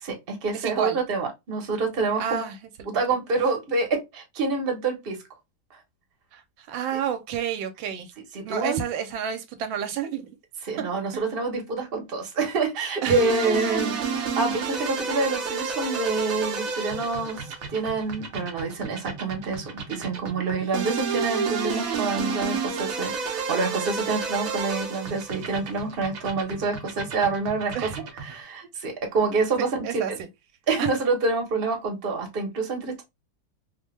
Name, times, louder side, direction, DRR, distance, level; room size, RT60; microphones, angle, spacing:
voice 1, 0.0-2.5 2.8-5.2 8.3-8.8 10.7-14.0 14.4-17.4 17.7-27.9 28.3-30.2 30.7-33.0, right 3 dB, 40° right, 1.0 m, -27 dB
voice 2, 0.5-1.0 2.2-2.7 6.3-8.1 8.4-10.4 10.8-11.2 13.0-13.2 27.7-28.0 29.6-30.3 30.8-30.9, right 8 dB, 80° right, 1.3 m, -30 dB
sound 1, 13.1-28.4, right 5 dB, 65° right, 0.9 m, -31 dB
3.3 x 2.2 x 3.1 m
omnidirectional pair, 2.1 m